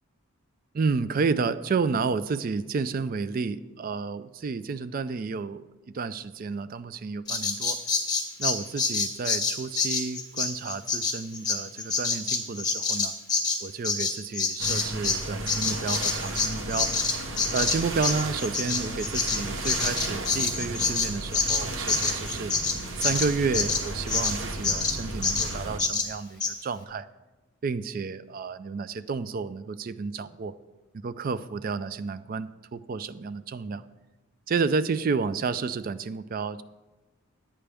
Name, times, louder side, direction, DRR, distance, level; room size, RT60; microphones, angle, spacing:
voice 1, 0.7-5.7 5.9-7.8 8.4-13.2 13.6-16.9 17.5-22.5 23.0-27.1 27.6-30.5 30.9-33.8 34.5-36.6, right 4 dB, 40° right, 14 dB, 0.3 m, -31 dB
Bird vocalization bird call bird song, 7.3-15.2 15.5-24.4 24.6-25.0 25.2-25.5 25.8-26.1 26.4-26.5, left 4 dB, 20° left, 1.0 m, -27 dB
sound 1, 14.6-25.8, right 2 dB, 60° right, 1.0 m, -34 dB
11.0 x 8.7 x 3.4 m, 1.1 s
head